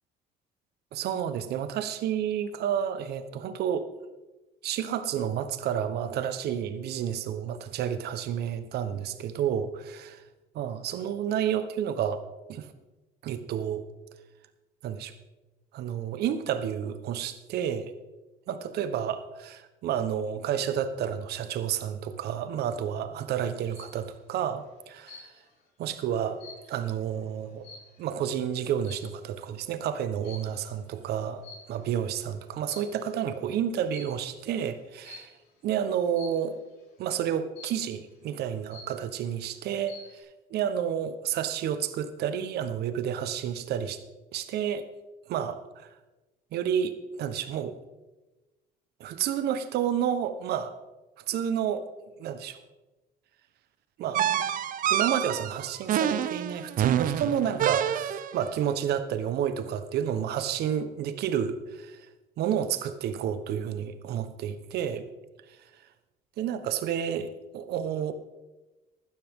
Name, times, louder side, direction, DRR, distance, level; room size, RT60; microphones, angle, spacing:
voice 1, 0.9-3.9 4.6-10.2 10.6-12.2 12.5-12.7 13.2-13.8 14.8-15.1 15.7-17.9 18.5-25.3 25.8-26.4 26.7-27.7 28.0-35.3 35.6-36.6 37.0-40.2 40.5-44.0 44.3-44.9 45.3-45.9 46.5-47.8 49.0-50.8 51.3-51.9 52.2-52.6 54.0-54.3 54.9-62.0 62.4-65.0 66.4-68.1, right 9 dB, 75° right, 10 dB, 1.2 m, -30 dB
sound 1, 23.4-24.0 25.1-25.6 26.0-28.2 28.8-29.2 30.2-30.6 31.4-32.0 32.5-33.2 33.9-34.3 35.0-35.4 36.2-36.6 37.6-38.0 38.4-38.5 38.7-39.3 39.7-40.2, left 3 dB, 70° left, 5.2 m, -48 dB
sound 2, 54.1-58.4, right 10 dB, 55° right, 0.7 m, -27 dB
15.5 x 12.0 x 3.7 m, 1.1 s
cardioid pair, 110°, 17 cm